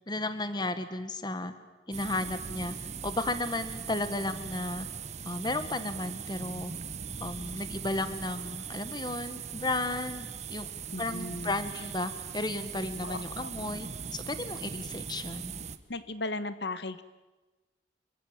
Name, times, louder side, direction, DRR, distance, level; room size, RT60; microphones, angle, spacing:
voice 1, 0.1-1.5 1.9-4.9 5.2-6.7 7.2-10.7 11.0-15.5, left 2 dB, 25° left, 11 dB, 1.5 m, -34 dB
sound 1, 1.9-15.8, right 6 dB, 40° right, 1.3 m, -40 dB
voice 2, 10.9-11.5 13.0-13.7 15.9-17.0, left 2 dB, 70° left, 12 dB, 1.4 m, -36 dB
28.0 x 23.5 x 9.0 m, 1.2 s
head